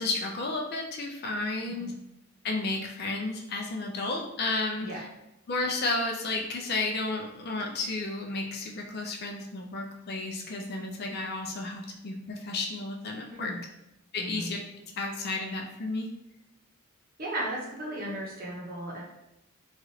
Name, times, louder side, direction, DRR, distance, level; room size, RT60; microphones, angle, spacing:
voice 1, 0.0-1.9 2.4-5.1 5.5-13.5 14.1-14.6 15.0-16.1, left 2 dB, 45° left, 1 dB, 0.4 m, -32 dB
voice 2, 1.6-1.9 4.8-5.0 13.3-13.6 14.2-14.5 17.2-19.0, right 1 dB, 40° right, -3 dB, 0.8 m, -36 dB
3.0 x 2.4 x 3.0 m, 0.88 s
head